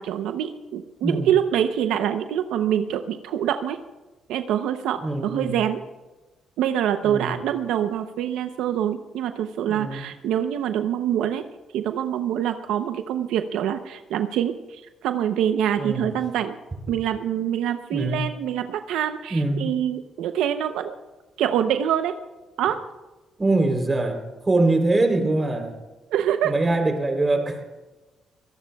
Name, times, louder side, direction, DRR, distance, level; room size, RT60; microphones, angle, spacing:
voice 1, 0.0-3.8 4.3-5.8 6.6-11.4 11.7-16.6 16.9-21.0 21.4-22.1 22.6-22.8 26.1-26.5, right 10 dB, 90° right, 8 dB, 0.7 m, -25 dB
voice 2, 1.0-1.3 5.0-5.6 7.0-7.4 9.7-10.1 15.8-16.2 17.9-18.2 19.3-19.7 23.4-25.8 26.4-27.6, right 2 dB, 25° right, 4 dB, 3.4 m, -23 dB
24.0 x 18.0 x 2.3 m, 1.1 s
cardioid pair, 90°, 0 cm